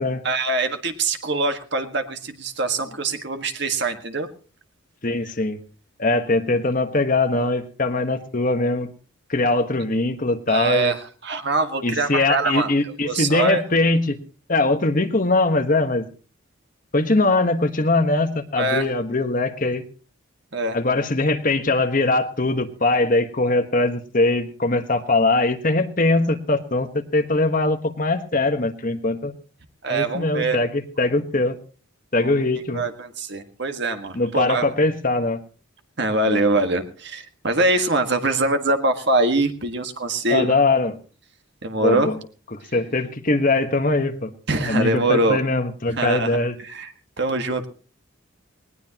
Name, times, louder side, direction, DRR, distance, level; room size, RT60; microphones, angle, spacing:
voice 1, 0.2-4.3 10.5-13.6 18.6-18.9 20.5-20.8 29.8-30.6 32.2-32.4 32.7-34.7 36.0-40.6 41.6-42.1 44.5-45.4 45.9-47.7, right 2 dB, 55° right, 7 dB, 1.7 m, -23 dB
voice 2, 5.0-5.6 6.0-8.9 9.3-10.9 11.8-14.2 14.5-16.0 16.9-19.8 20.7-29.3 29.9-31.6 32.1-32.8 34.1-35.4 36.2-36.4 40.3-41.0 41.8-42.1 42.5-44.3 44.7-46.5, left 2 dB, 40° left, 7 dB, 1.3 m, -21 dB
20.0 x 19.0 x 3.0 m, 0.36 s
head